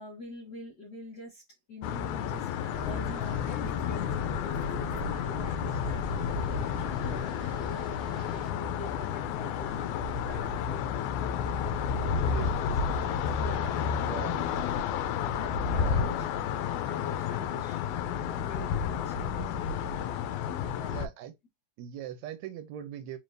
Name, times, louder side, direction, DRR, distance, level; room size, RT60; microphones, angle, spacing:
voice 1, 0.0-11.0 11.8-14.6 15.3-16.3 16.9-20.2 20.5-21.1, left 2 dB, 55° left, 1.1 m, -46 dB
sound 1, 1.8-21.1, left 7 dB, 85° left, 2.0 m, -31 dB
sound 2, 2.7-8.5, right 1 dB, 40° right, 1.1 m, -42 dB
voice 2, 14.0-14.6 15.8-16.2 20.7-21.3 21.8-23.2, right 9 dB, 80° right, 1.8 m, -41 dB
4.5 x 3.2 x 2.5 m
omnidirectional pair, 3.4 m